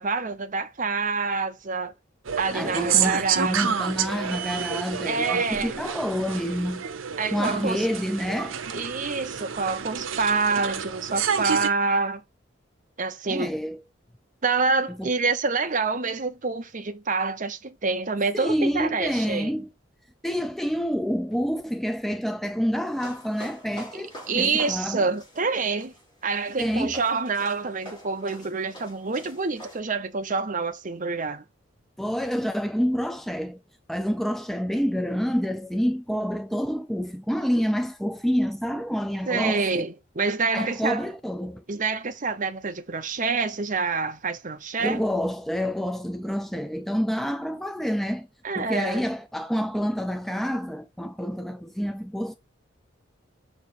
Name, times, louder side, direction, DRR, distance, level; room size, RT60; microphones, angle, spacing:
voice 1, 0.0-1.9 2.4-3.6 4.3-4.4 5.0-5.8 7.2-7.9 8.7-12.2 13.0-13.5 14.4-19.5 23.9-25.9 26.2-31.4 39.3-41.1 41.7-45.0 48.4-49.0, right 4 dB, 40° right, 0.9 m, -27 dB
sound 1, 2.3-11.7, right 7 dB, 85° right, 0.8 m, -29 dB
voice 2, 2.5-6.8 7.3-8.6 13.3-13.8 15.0-15.1 18.3-19.7 20.2-25.1 26.6-27.0 32.0-33.6 33.9-39.8 40.5-41.6 44.8-48.3 48.6-52.3, equal, ahead, 0.4 m, -28 dB
sound 2, 22.9-29.8, equal, 25° left, 4.4 m, -45 dB
6.8 x 3.4 x 4.3 m
head